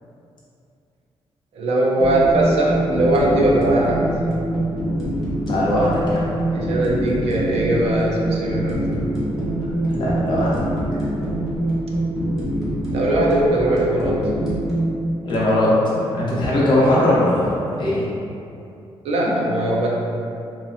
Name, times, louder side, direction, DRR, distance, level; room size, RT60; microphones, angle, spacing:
voice 1, 1.5-4.1 6.5-8.8 12.9-14.3 19.0-19.9, right 1 dB, 75° right, -3 dB, 0.4 m, -20 dB
sound 1, 2.0-14.9, right 1 dB, 5° right, 0.5 m, -24 dB
voice 2, 5.4-6.3 9.9-10.5 15.2-18.1, left 1 dB, 50° left, -7 dB, 0.6 m, -19 dB
2.8 x 2.1 x 2.5 m, 2.6 s
wide cardioid pair, 175°, 10 cm